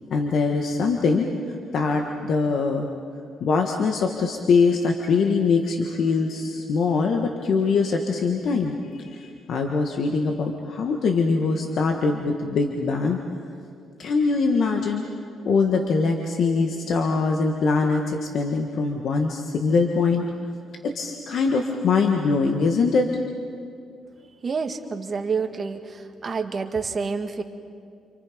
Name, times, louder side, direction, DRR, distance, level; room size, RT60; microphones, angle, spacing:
voice 1, 0.1-1.3 1.7-2.9 3.4-13.2 14.0-15.0 15.4-20.3 20.8-23.1, left 4 dB, 65° left, 3 dB, 1.8 m, -23 dB
voice 2, 24.4-27.4, right 5 dB, 40° right, 5 dB, 1.8 m, -28 dB
29.5 x 27.0 x 5.3 m, 2.3 s
cardioid pair, 90°, 0 cm